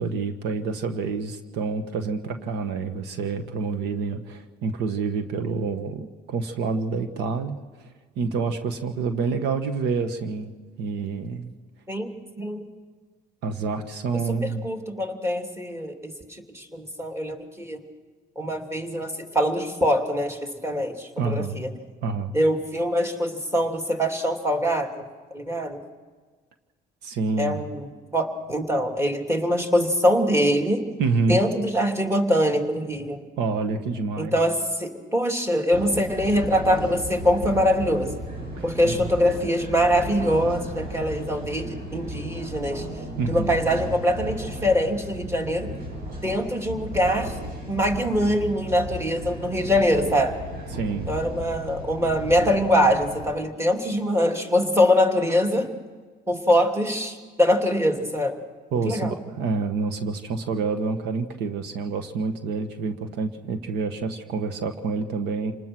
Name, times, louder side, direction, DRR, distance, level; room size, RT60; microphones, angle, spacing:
voice 1, 0.0-7.9 8.1-10.5 10.8-11.5 13.4-14.7 21.2-21.6 22.0-22.3 27.0-27.6 31.0-31.4 33.4-34.3 38.8-39.0 43.2-43.6 50.7-51.1 58.7-65.5, right 4 dB, 85° right, 8 dB, 1.5 m, -27 dB
voice 2, 11.9-12.7 14.1-17.8 18.4-21.7 22.3-25.0 25.3-25.8 27.4-27.9 28.1-30.8 31.3-33.2 34.2-38.1 38.6-42.9 43.3-45.7 46.2-47.4 47.7-50.4 51.1-55.7 56.3-58.4 58.8-59.1, equal, 15° right, 3 dB, 2.8 m, -23 dB
sound 1, 35.7-53.3, right 1 dB, 65° right, 8.0 m, -35 dB
28.0 x 19.5 x 6.2 m, 1.4 s
cardioid pair, 110°, 17 cm